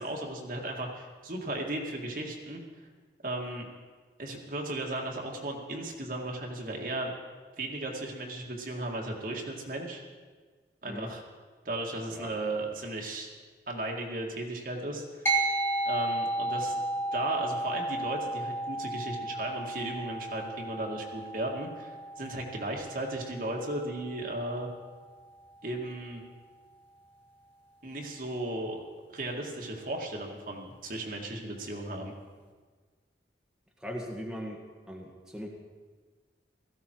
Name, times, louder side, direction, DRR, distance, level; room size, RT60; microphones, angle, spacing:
voice 1, 0.0-2.6 3.2-3.7 4.2-7.1 7.6-10.0 10.8-11.2 11.6-13.3 13.7-15.3 15.9-16.8 17.1-21.9 22.2-24.7 25.6-26.2 27.8-28.8 29.1-32.1, right 1 dB, 50° right, 0 dB, 2.1 m, -35 dB
sound 1, 15.3-25.0, right 2 dB, 15° left, 1.9 m, -34 dB
voice 2, 33.8-34.6 34.9-35.5, equal, 5° right, -2 dB, 1.6 m, -39 dB
16.5 x 15.0 x 4.6 m, 1.5 s
head